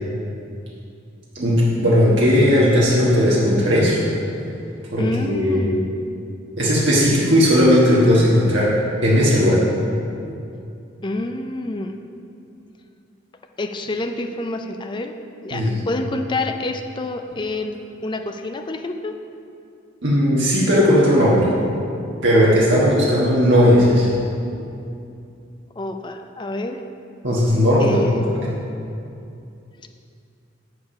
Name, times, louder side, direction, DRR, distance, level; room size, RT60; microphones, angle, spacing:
voice 1, 1.3-4.0 4.9-5.7 6.6-8.7 9.0-9.6 15.5-15.8 20.0-21.5 22.2-24.1 27.2-28.4, equal, 65° right, -7 dB, 1.4 m, -16 dB
voice 2, 5.0-5.9 11.0-11.9 13.6-15.1 15.4-17.7 18.0-19.1 25.8-26.8 27.8-28.4, left 2 dB, 25° left, 6 dB, 0.4 m, -27 dB
6.8 x 6.7 x 5.6 m, 2.6 s
head